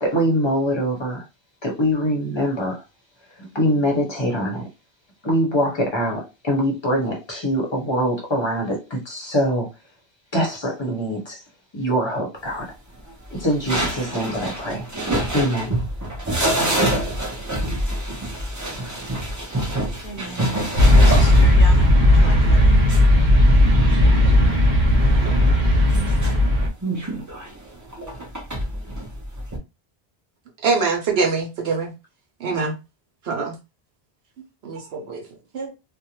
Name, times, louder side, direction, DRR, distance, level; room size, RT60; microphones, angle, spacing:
voice 1, 0.0-1.2 1.6-2.8 3.4-4.7 5.2-9.7 10.3-11.4 11.7-12.7 13.3-14.9 15.3-15.7, equal, 30° left, 0.8 m, -23 dB
sound 1, 13.3-24.4 25.0-26.3 26.8-29.6, right 1 dB, 20° right, 0.5 m, -27 dB
voice 2, 20.0-20.8 21.0-22.8, equal, 55° left, 0.8 m, -36 dB
sound 2, 20.7-26.7, left 1 dB, 50° right, 0.9 m, -15 dB
voice 3, 30.6-31.9 32.4-32.7 33.3-33.5 34.6-35.2 35.5-35.7, right 4 dB, 75° right, 0.9 m, -23 dB
2.5 x 2.1 x 2.9 m
omnidirectional pair, 1.1 m